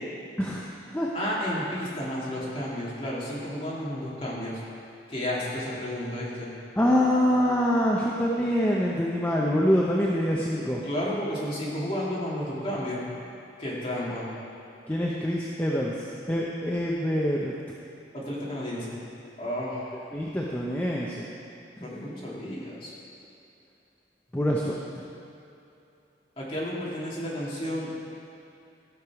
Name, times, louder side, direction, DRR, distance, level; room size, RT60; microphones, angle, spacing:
voice 1, 1.1-4.6 5.1-6.5 10.8-13.0 13.6-14.3 18.1-19.0 19.4-20.0 21.8-22.9 26.4-27.9, equal, 30° left, -7 dB, 2.3 m, -32 dB
voice 2, 6.8-10.8 14.9-17.5 20.1-21.3 24.3-25.0, equal, 10° left, -4 dB, 0.6 m, -25 dB
14.0 x 6.7 x 4.7 m, 2.8 s
head